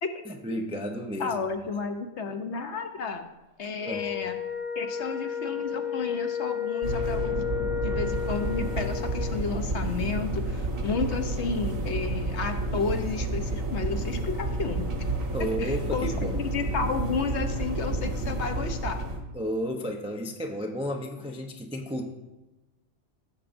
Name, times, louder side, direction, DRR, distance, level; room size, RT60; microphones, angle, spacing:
voice 1, 0.3-1.4 3.9-4.1 15.3-16.4 19.3-22.1, equal, 10° right, 3 dB, 0.3 m, -32 dB
voice 2, 1.2-3.3 3.6-4.4 4.8-7.4 7.8-14.9 15.6-19.0, left 5 dB, 60° left, 6 dB, 1.0 m, -32 dB
Wind instrument woodwind instrument, 3.8-9.4, left 9 dB, 85° left, 2.4 m, -32 dB
sound 1, 6.8-19.2, right 2 dB, 45° right, 1.2 m, -30 dB
15.5 x 6.9 x 2.6 m, 1.1 s
omnidirectional pair, 1.4 m